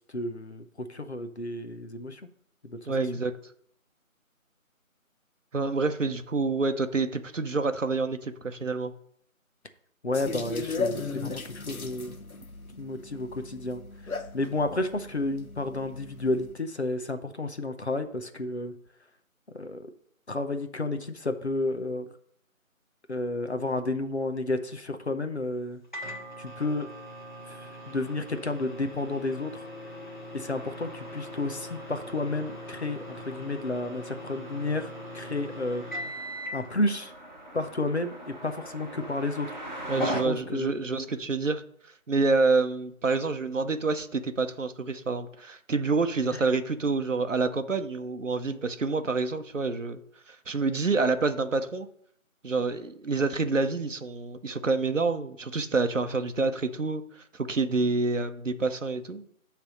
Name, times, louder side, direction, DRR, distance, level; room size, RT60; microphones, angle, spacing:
voice 1, 0.1-2.2 2.6-2.8 10.0-12.1 12.8-18.7 19.5-19.9 20.3-22.1 23.1-25.8 26.4-26.9 27.5-29.7 30.3-33.0 33.3-35.8 36.5-37.1 37.5-40.7, left 2 dB, 50° left, 8 dB, 0.8 m, -31 dB
voice 2, 2.9-3.3 5.5-8.9 39.9-41.6 42.1-50.0 50.3-51.9 52.4-59.3, right 3 dB, 60° right, 10 dB, 0.8 m, -27 dB
sound 1, 10.1-16.5, left 4 dB, 80° left, 1.1 m, -37 dB
Microwave oven, 25.9-36.7, equal, 35° left, 1.2 m, -41 dB
sound 2, 30.5-40.2, right 1 dB, 35° right, 1.1 m, -41 dB
9.3 x 3.4 x 6.3 m, 0.67 s
figure-of-eight pair, 175°, 42 cm